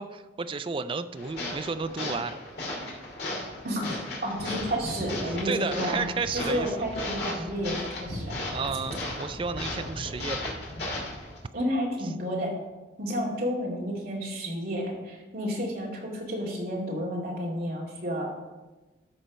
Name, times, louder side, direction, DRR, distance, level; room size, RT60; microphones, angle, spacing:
voice 1, 0.0-2.3 4.4-4.5 5.2-6.7 7.3-7.5 8.5-10.5, right 4 dB, 25° right, 11 dB, 0.3 m, -32 dB
sound 1, 1.1-11.4, left 1 dB, 55° left, 2.5 m, -35 dB
voice 2, 3.6-6.1 6.3-8.3 11.5-12.5 13.0-18.4, equal, 50° right, -3 dB, 2.5 m, -31 dB
13.0 x 4.4 x 5.3 m, 1.2 s
head